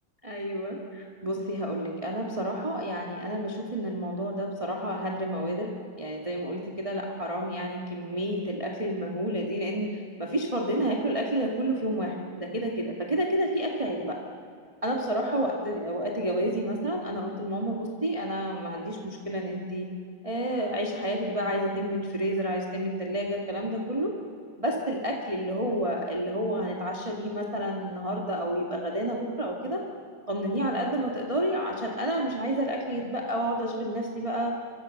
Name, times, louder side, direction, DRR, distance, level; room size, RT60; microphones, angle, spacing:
voice 1, 0.2-14.2 14.8-19.9 20.2-24.1 24.6-29.8 30.3-34.5, right 1 dB, 15° right, -1 dB, 1.3 m, -30 dB
28.0 x 25.0 x 6.7 m, 2.3 s
omnidirectional pair, 4.4 m